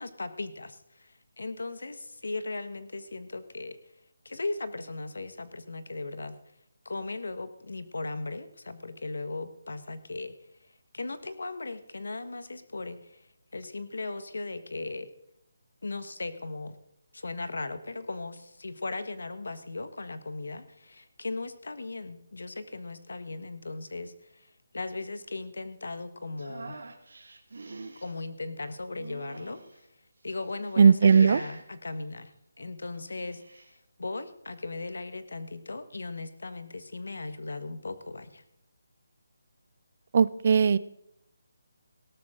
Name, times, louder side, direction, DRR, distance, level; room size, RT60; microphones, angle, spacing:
voice 1, 0.0-3.8 4.2-6.4 6.8-10.4 10.9-13.3 13.5-15.1 15.8-16.8 17.1-26.8 28.0-29.6 30.2-32.3 32.6-38.4, left 3 dB, 85° left, 12 dB, 1.5 m, -37 dB
sound 1, 26.4-28.1 28.9-29.8 30.4-30.8 31.0-31.6 32.9-33.7, right 3 dB, 65° right, 2.5 m, -45 dB
voice 2, 30.8-31.4 40.1-40.8, right 6 dB, 30° right, 18 dB, 0.4 m, -18 dB
17.5 x 13.0 x 3.8 m, 0.77 s
hypercardioid pair, 180°, 0 cm